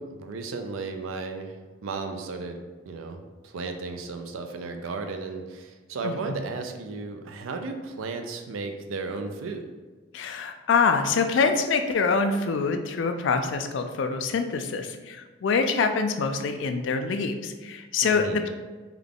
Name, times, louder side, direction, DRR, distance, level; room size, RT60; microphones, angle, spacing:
voice 1, 0.0-1.6 1.8-2.6 2.9-9.7 18.0-18.4, right 4 dB, 85° right, 5 dB, 0.4 m, -34 dB
voice 2, 6.0-6.4 10.1-18.5, left 5 dB, 65° left, 7 dB, 0.3 m, -25 dB
3.5 x 2.3 x 3.6 m, 1.3 s
head